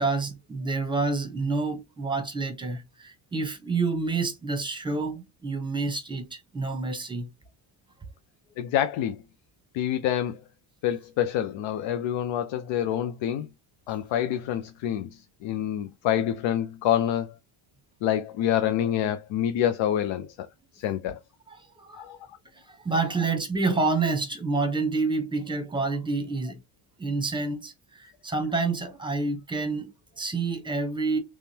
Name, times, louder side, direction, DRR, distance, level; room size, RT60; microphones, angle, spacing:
voice 1, 0.0-7.3 21.5-22.1 22.5-26.6 27.0-31.2, right 3 dB, 10° right, 0.9 m, -28 dB
voice 2, 8.6-9.2 9.7-10.4 10.8-13.5 13.9-17.3 18.0-20.5 20.7-21.2 21.9-22.2, left 10 dB, 75° left, 0.6 m, -27 dB
3.6 x 3.2 x 2.8 m
cardioid pair, 140°, 46 cm